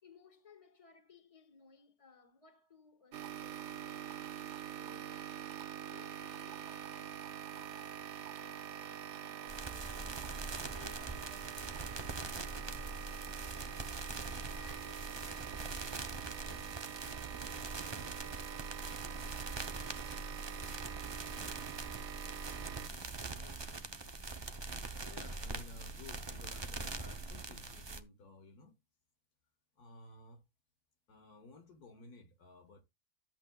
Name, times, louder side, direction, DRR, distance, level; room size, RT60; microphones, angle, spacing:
voice 1, 0.0-5.4 5.6-10.2 10.7-13.9 14.3-18.9, left 5 dB, 20° left, 1.8 m, -62 dB
sound 1, 3.1-22.9, right 10 dB, 60° right, 0.8 m, -45 dB
sound 2, 9.5-28.0, right 3 dB, 30° right, 0.5 m, -43 dB
voice 2, 25.1-28.8 29.8-30.4 31.1-32.8, left 2 dB, 70° left, 1.9 m, -55 dB
12.5 x 8.3 x 2.3 m
omnidirectional pair, 1.7 m